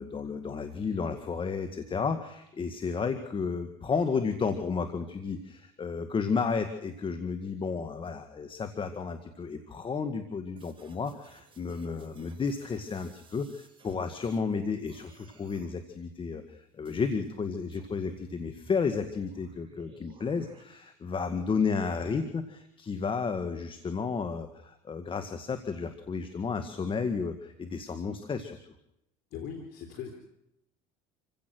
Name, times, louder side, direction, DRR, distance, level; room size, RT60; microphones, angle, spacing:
voice 1, 0.0-28.6, left 5 dB, 30° left, 8 dB, 1.9 m, -32 dB
sound 1, 10.6-14.5 14.8-15.7 16.8-17.3 17.7-20.6, right 4 dB, 30° right, 5.1 m, -57 dB
voice 2, 29.3-30.1, left 7 dB, 60° left, 5 dB, 3.5 m, -39 dB
27.5 x 16.0 x 6.3 m, 0.82 s
supercardioid pair, 100°, 18 cm